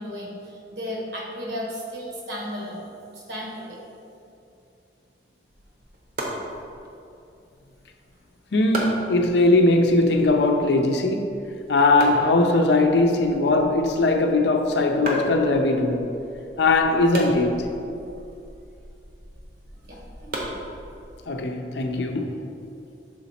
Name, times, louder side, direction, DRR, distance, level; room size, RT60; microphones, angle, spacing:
voice 1, 0.0-2.9 3.1-3.8 19.8-20.5, equal, 70° right, 1.4 m, -34 dB
sound 1, 5.5-21.3, right 1 dB, 55° right, 1.0 m, -37 dB
voice 2, 8.5-11.4 11.7-16.1 16.6-17.7 21.3-22.4, left 2 dB, 70° left, 0.5 m, -20 dB
6.3 x 4.1 x 4.2 m
head